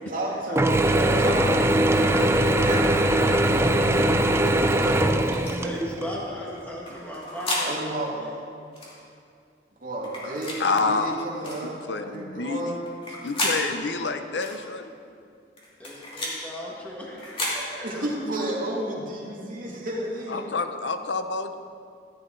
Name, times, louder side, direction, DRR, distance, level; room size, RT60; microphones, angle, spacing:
voice 1, 0.1-3.3 4.7-4.9 7.6-8.3 9.8-12.8 17.8-20.4, right 1 dB, 50° right, -4 dB, 2.5 m, -32 dB
Mechanisms / Drill, 0.6-6.1, right 1 dB, 15° right, 0.5 m, -21 dB
sound 1, 5.3-5.6 6.9-7.7 8.7-8.9 10.0-10.6 11.4-11.6 12.9-13.6 14.4-14.6 15.6-16.4 17.2-17.6, left 1 dB, 30° left, 2.6 m, -31 dB
voice 2, 5.6-7.7 8.2-8.3 15.8-18.1, equal, 10° left, -5 dB, 1.8 m, -36 dB
voice 3, 10.6-11.5 11.9-12.7 13.2-14.9 20.3-21.5, left 4 dB, 75° left, 8 dB, 0.7 m, -28 dB
14.5 x 10.5 x 3.9 m, 2.4 s
head